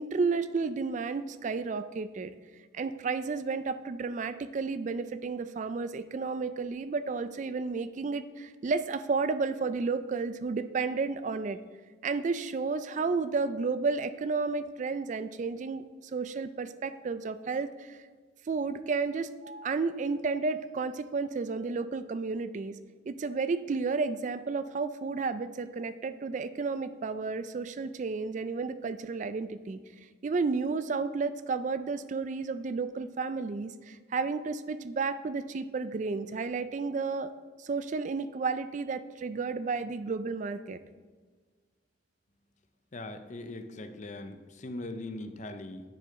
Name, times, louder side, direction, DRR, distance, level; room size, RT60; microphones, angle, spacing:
voice 1, 0.0-2.3 2.7-11.6 12.0-15.8 16.1-18.0 18.5-22.8 23.1-29.8 30.2-37.3 37.6-40.8, right 4 dB, 40° right, 12 dB, 0.3 m, -32 dB
voice 2, 42.9-45.8, left 2 dB, 40° left, 8 dB, 0.6 m, -40 dB
9.8 x 6.6 x 3.9 m, 1.4 s
head